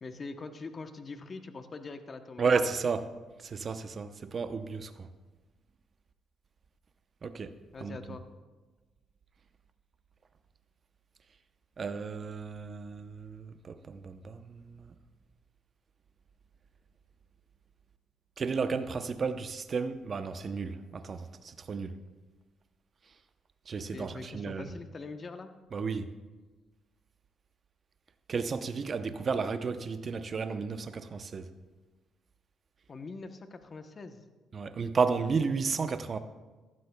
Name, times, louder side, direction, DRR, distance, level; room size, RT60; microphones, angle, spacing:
voice 1, 0.0-2.5 7.7-8.2 23.9-25.5 32.9-34.2, left 3 dB, 35° left, 8 dB, 0.8 m, -43 dB
voice 2, 2.4-3.1 3.4-5.1 7.2-7.5 7.8-8.0 11.8-14.9 18.4-22.0 23.7-24.8 25.7-26.1 28.3-31.5 34.5-36.2, right 5 dB, 40° right, 10 dB, 0.7 m, -33 dB
15.5 x 12.5 x 2.2 m, 1.3 s
cardioid pair, 105°, 0 cm